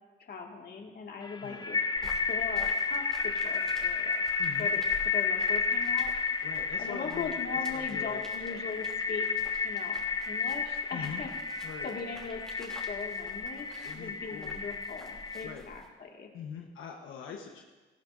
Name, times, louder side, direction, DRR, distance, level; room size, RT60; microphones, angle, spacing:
voice 1, 0.2-4.2 4.6-4.8 5.1-6.1 6.5-9.3 9.6-11.3 11.6-16.3, left 5 dB, 55° left, 1 dB, 2.2 m, -40 dB
sound 1, 1.2-15.5, left 5 dB, 20° left, 0.7 m, -32 dB
sound 2, 2.0-15.9, equal, 5° left, 3.0 m, -50 dB
voice 2, 4.4-4.7 6.4-8.6 10.9-11.2 11.6-11.9 13.8-14.6 15.4-15.7 16.3-17.6, left 7 dB, 85° left, 1 dB, 1.2 m, -43 dB
18.5 x 14.5 x 2.7 m, 1.3 s
cardioid pair, 90°, 20 cm